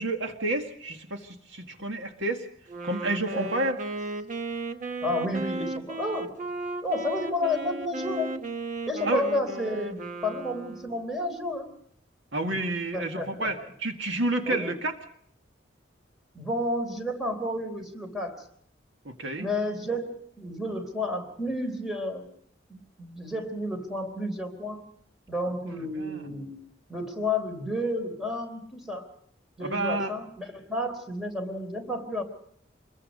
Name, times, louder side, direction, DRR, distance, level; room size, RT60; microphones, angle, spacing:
voice 1, 0.0-2.5 2.8-3.8 9.1-9.3 12.3-14.9 19.1-19.5 26.0-26.3 29.6-30.1, right 2 dB, 75° right, 4 dB, 2.0 m, -30 dB
Wind instrument woodwind instrument, 2.7-11.0, right 2 dB, 40° right, 1.2 m, -35 dB
voice 2, 5.0-6.4 6.8-8.4 8.9-11.7 12.4-12.6 12.9-13.5 14.5-14.7 16.3-18.4 19.3-22.2 22.7-24.8 25.3-26.6 26.9-29.1 29.6-32.2, left 1 dB, ahead, 3 dB, 3.8 m, -31 dB
27.5 x 21.5 x 5.3 m, 0.65 s
head